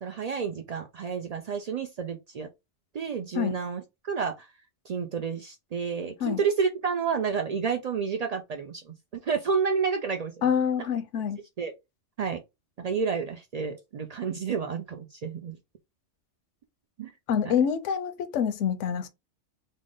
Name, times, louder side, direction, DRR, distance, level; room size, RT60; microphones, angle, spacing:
voice 1, 0.0-2.5 2.9-4.5 4.9-10.3 11.6-11.7 12.2-12.4 12.8-15.6 17.0-17.1 17.4-17.5, right 6 dB, 85° right, 0.3 m, -30 dB
voice 2, 10.4-11.4 17.3-19.1, left 8 dB, 80° left, 0.9 m, -26 dB
3.6 x 2.0 x 3.7 m
omnidirectional pair, 1.2 m